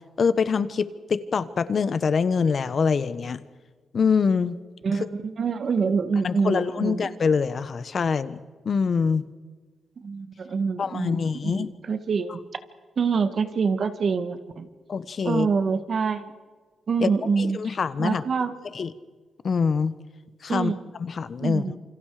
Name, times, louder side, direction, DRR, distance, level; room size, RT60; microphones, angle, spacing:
voice 1, 0.2-3.4 3.9-4.6 6.2-8.4 8.6-9.2 10.8-11.7 14.9-15.5 17.0-17.1 17.4-18.2 18.7-18.9 19.4-19.9 20.4-20.7 21.0-21.6, left 5 dB, 50° left, 14 dB, 1.2 m, -24 dB
voice 2, 4.8-7.1 10.0-12.4 13.0-14.7 15.2-16.3 16.9-17.6 18.0-18.5 20.5-20.8 21.4-21.8, right 5 dB, 55° right, 10 dB, 2.0 m, -26 dB
28.0 x 26.0 x 5.0 m, 1.4 s
cardioid pair, 90°, 0 cm